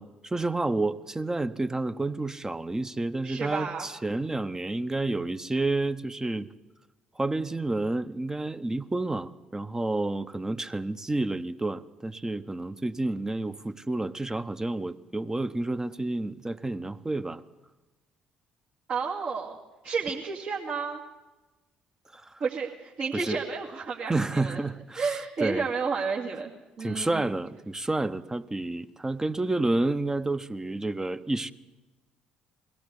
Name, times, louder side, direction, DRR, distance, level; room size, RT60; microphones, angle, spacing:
voice 1, 0.0-6.5 7.2-17.4 22.1-22.4 23.1-23.4 24.1-25.7 26.8-31.5, right 2 dB, 15° right, 12 dB, 1.0 m, -30 dB
voice 2, 3.2-3.9 18.9-19.6 19.8-21.0 22.4-24.6 25.0-26.5 26.8-27.3, right 5 dB, 55° right, -4 dB, 2.4 m, -31 dB
21.5 x 17.0 x 8.3 m, 1.2 s
hypercardioid pair, 50°, 3 cm